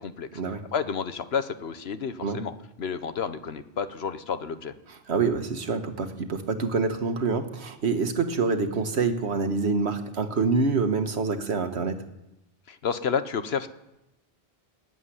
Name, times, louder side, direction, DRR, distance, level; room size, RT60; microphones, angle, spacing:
voice 1, 0.0-0.4 0.7-2.5 2.8-4.7 12.7-13.7, left 6 dB, 75° left, 11 dB, 1.2 m, -30 dB
voice 2, 5.1-12.0, right 4 dB, 90° right, 8 dB, 1.6 m, -26 dB
17.5 x 8.1 x 9.8 m, 0.91 s
omnidirectional pair, 1.1 m